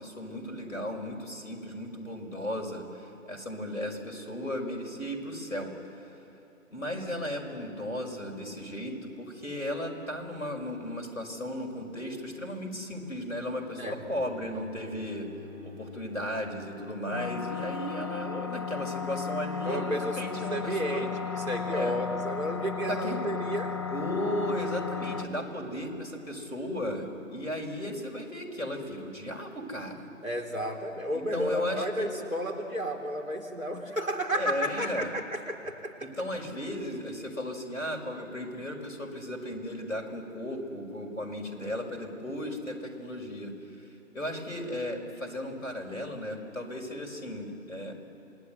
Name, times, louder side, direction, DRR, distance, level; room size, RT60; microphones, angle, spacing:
voice 1, 0.0-5.7 6.7-15.3 15.6-21.1 21.7-22.0 22.9-23.2 23.9-30.1 31.1-32.1 34.3-35.1 36.0-43.9 44.1-47.9, left 1 dB, 75° left, 3 dB, 5.7 m, -35 dB
Bowed string instrument, 13.5-17.6, left 4 dB, 20° right, 7.8 m, -49 dB
sound 1, 17.1-25.2, left 6 dB, 20° left, 0.6 m, -34 dB
voice 2, 19.6-23.8 30.2-36.3, equal, 80° right, 3 dB, 3.9 m, -32 dB
27.0 x 20.0 x 9.5 m, 2.9 s
figure-of-eight pair, 145°, 40 cm